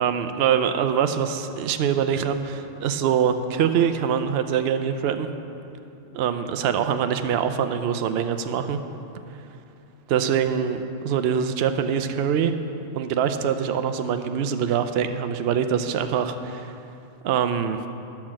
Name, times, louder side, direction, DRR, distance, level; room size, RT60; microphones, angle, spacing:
voice 1, 0.0-5.3 6.1-8.8 10.1-12.5 12.9-16.7 17.2-17.8, right 8 dB, 60° right, 8 dB, 0.7 m, -24 dB
10.5 x 5.9 x 7.4 m, 2.8 s
omnidirectional pair, 1.4 m